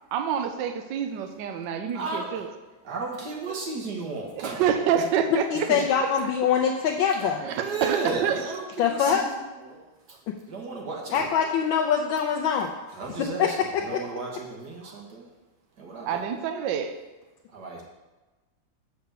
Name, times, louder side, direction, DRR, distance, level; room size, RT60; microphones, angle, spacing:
voice 1, 0.1-2.5 4.4-5.7 6.0-6.1 7.4-8.0 8.2-8.3 16.1-16.9, right 8 dB, 75° right, 7 dB, 1.3 m, -27 dB
voice 2, 1.9-2.5 2.8-4.7 5.0-5.1 5.5-5.8 7.1-10.2 10.5-11.5 12.9-15.3 15.8-16.2 17.5-17.8, right 3 dB, 55° right, -1 dB, 1.9 m, -34 dB
voice 3, 5.5-7.4 8.8-9.2 11.1-12.7 13.2-13.5 13.9-14.0, left 7 dB, 90° left, 0 dB, 1.4 m, -24 dB
6.8 x 4.9 x 6.8 m, 1.2 s
omnidirectional pair, 2.1 m